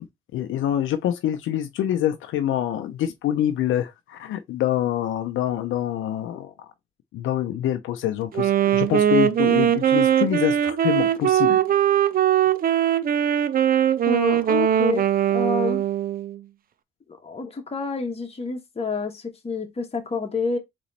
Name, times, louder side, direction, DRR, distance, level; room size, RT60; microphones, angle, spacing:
voice 1, 0.3-6.7 7.1-11.6, left 11 dB, 80° left, 0.6 m, -26 dB
Wind instrument woodwind instrument, 8.3-16.4, right 10 dB, 45° right, 0.5 m, -20 dB
voice 2, 14.1-15.8 17.2-20.6, left 4 dB, 30° left, 1.4 m, -28 dB
4.1 x 3.1 x 4.1 m
cardioid pair, 90°, 20 cm